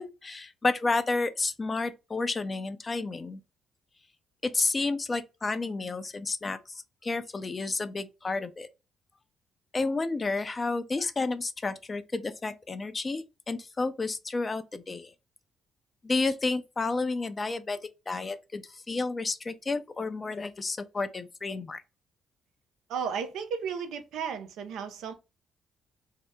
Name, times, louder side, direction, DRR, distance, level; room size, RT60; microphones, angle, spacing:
voice 1, 0.0-3.4 4.4-8.7 9.7-15.1 16.0-21.8, left 3 dB, 35° left, 0.4 m, -31 dB
voice 2, 22.9-25.1, right 6 dB, 75° right, 0.5 m, -34 dB
2.7 x 2.0 x 3.4 m
hypercardioid pair, 50°, 0 cm